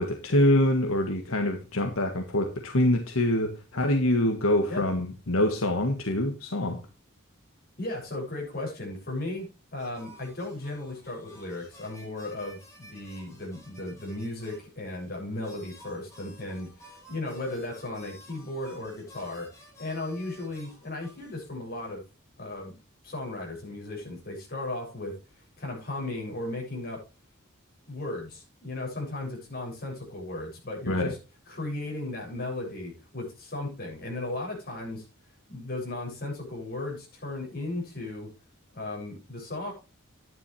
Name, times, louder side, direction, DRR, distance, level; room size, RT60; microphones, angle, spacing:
voice 1, 0.0-6.8 30.9-31.1, left 1 dB, 80° left, 4 dB, 1.6 m, -25 dB
voice 2, 7.8-19.5 19.8-22.0 22.4-22.8 23.0-25.2 25.6-27.0 27.9-31.2 31.5-35.1 35.5-38.3 38.7-39.7, left 2 dB, 45° left, 0 dB, 7.1 m, -36 dB
sound 1, 9.8-14.6 15.0-15.1 15.4-21.4, equal, 15° left, 5.1 m, -53 dB
11.5 x 10.5 x 3.3 m, 0.30 s
head